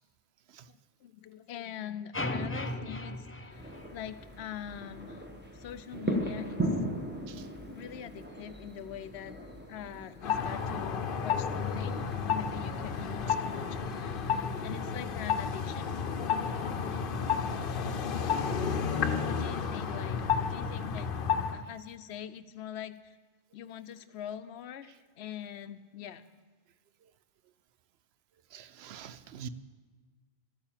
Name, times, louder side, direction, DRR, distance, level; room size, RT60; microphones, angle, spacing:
voice 1, 0.7-5.2 5.5-6.6 7.7-9.4 9.7-15.8 19.2-20.2 20.5-21.1 21.5-23.2 23.5-26.2, left 10 dB, 90° left, 0.9 m, -43 dB
sound 1, 2.1-4.4, left 1 dB, 15° left, 0.5 m, -36 dB
sound 2, 3.5-15.5, right 1 dB, 10° right, 1.2 m, -39 dB
sound 3, 10.2-21.6, left 6 dB, 60° left, 0.9 m, -31 dB
voice 2, 28.5-29.5, right 8 dB, 80° right, 0.9 m, -46 dB
12.5 x 8.7 x 7.4 m
omnidirectional pair, 1.1 m